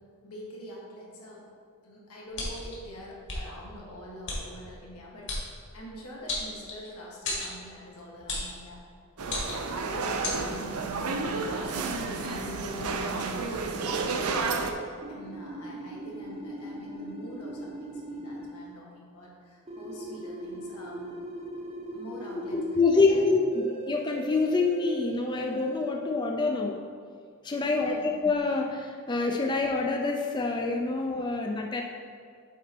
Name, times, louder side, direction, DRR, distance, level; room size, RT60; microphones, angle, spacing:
voice 1, 0.2-1.5 1.8-5.4 5.7-8.9 9.8-21.1 21.9-22.7 22.9-23.3 27.6-28.2, equal, 85° left, -3 dB, 1.8 m, -45 dB
sound 1, 2.3-2.7 3.3-3.4 4.3-4.4 5.3-5.4 6.3-6.9 7.2-7.5 8.3-8.5 9.2-9.7 10.2-10.4, left 2 dB, 55° left, 1.8 m, -32 dB
sound 2, 9.2-14.7, right 4 dB, 80° right, 0.6 m, -31 dB
sound 3, 10.4-13.9 15.0-18.5 19.7-22.8 23.5-25.9, right 1 dB, 30° right, 0.7 m, -40 dB
voice 2, 22.5-26.8 27.4-31.8, left 3 dB, 20° left, 1 dB, 0.4 m, -26 dB
8.2 x 4.1 x 4.5 m, 2.2 s
head